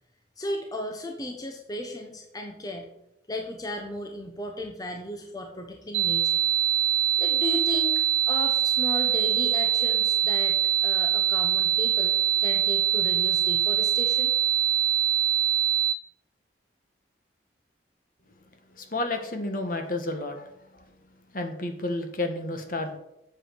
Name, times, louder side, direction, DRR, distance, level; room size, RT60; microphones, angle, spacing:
voice 1, 0.4-2.9 3.3-6.4 7.2-14.3, left 1 dB, 20° left, 3 dB, 0.9 m, -35 dB
sound 1, 5.9-15.9, right 11 dB, 85° right, 0.8 m, -23 dB
voice 2, 18.8-20.4 21.3-23.0, left 2 dB, 50° left, 6 dB, 1.5 m, -31 dB
8.2 x 7.7 x 6.3 m, 0.84 s
head